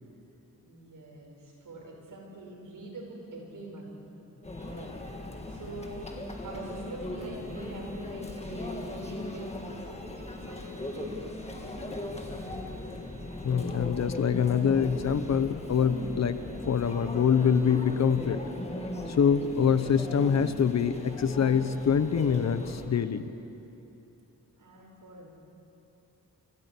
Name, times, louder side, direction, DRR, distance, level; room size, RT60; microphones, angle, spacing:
voice 1, 0.6-3.9 4.7-4.9 5.5-6.1 6.4-12.6 12.8-12.9 24.6-25.3, right 2 dB, 75° right, -1 dB, 5.3 m, -45 dB
Conversation / Chatter / Crowd, 4.4-22.9, left 2 dB, 20° left, 1.7 m, -38 dB
voice 2, 13.4-16.4 16.7-18.4 19.2-23.2, left 7 dB, 55° left, 12 dB, 0.8 m, -25 dB
25.5 x 14.5 x 8.4 m, 2.9 s
wide cardioid pair, 180°, 33 cm